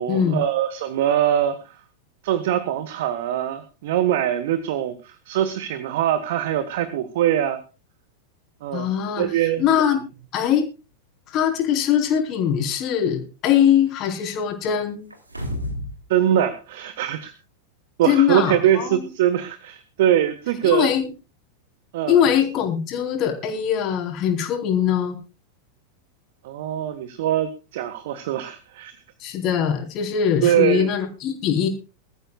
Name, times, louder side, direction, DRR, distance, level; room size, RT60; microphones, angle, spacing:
voice 1, 0.0-1.8 2.2-7.6 8.6-8.9 9.2-9.7 16.1-17.3 18.0-20.9 21.9-22.2 26.4-29.0 30.4-30.9, right 11 dB, 55° right, 12 dB, 1.3 m, -22 dB
voice 2, 8.7-9.3 9.6-10.0 10.3-10.6 11.3-15.0 18.0-19.1 20.6-21.1 22.1-25.2 29.2-31.7, left 9 dB, 35° left, 3 dB, 4.1 m, -21 dB
sound 1, 15.1-16.0 16.3-16.4, left 1 dB, 85° right, 2.9 m, -30 dB
22.5 x 13.5 x 2.4 m, 0.31 s
figure-of-eight pair, 90°, 0 cm